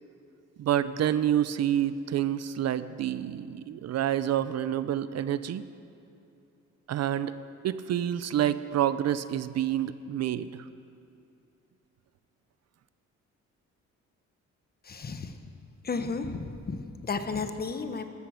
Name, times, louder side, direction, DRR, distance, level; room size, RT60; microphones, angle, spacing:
voice 1, 0.6-5.6 6.9-7.3 7.6-10.7, right 11 dB, 60° right, 14 dB, 0.6 m, -28 dB
voice 2, 14.8-15.3 15.8-18.1, left 4 dB, 30° left, 8 dB, 1.1 m, -33 dB
14.0 x 13.0 x 6.5 m, 2.6 s
cardioid pair, 90°, 30 cm